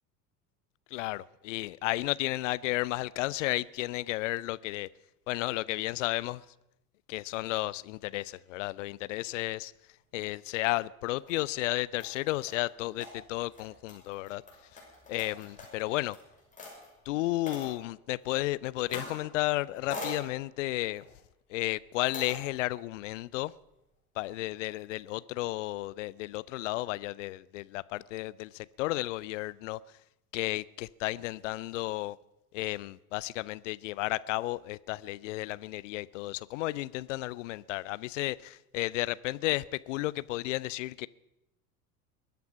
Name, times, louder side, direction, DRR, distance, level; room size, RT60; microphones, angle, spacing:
voice 1, 0.9-4.9 5.3-6.4 7.1-9.7 10.1-14.4 15.1-16.2 17.1-21.0 21.5-23.5 24.2-29.8 30.3-32.2 32.5-41.1, left 18 dB, 55° left, 0.6 m, -33 dB
sound 1, 11.0-11.4 12.0-16.9 17.5-17.8 18.8-19.3 19.6-20.2 20.9-21.2 22.1-22.4, left 2 dB, 15° left, 6.1 m, -43 dB
22.0 x 9.4 x 5.7 m
figure-of-eight pair, 70°, 45 cm